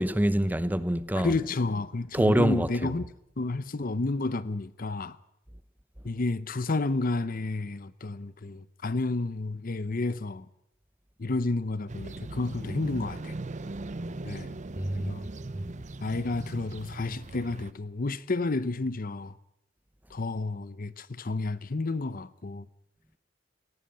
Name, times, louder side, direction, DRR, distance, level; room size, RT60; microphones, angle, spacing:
voice 1, 0.0-1.3 2.1-2.9 14.8-15.2 15.6-15.7, right 1 dB, 10° right, 0.8 m, -25 dB
voice 2, 1.2-3.1 3.4-5.2 6.0-10.5 11.2-13.3 14.2-14.6 14.9-15.2 16.0-19.3 20.1-22.7, left 3 dB, 50° left, 0.8 m, -31 dB
sound 1, 11.9-17.7, right 2 dB, 40° right, 0.7 m, -39 dB
18.0 x 16.0 x 9.9 m
head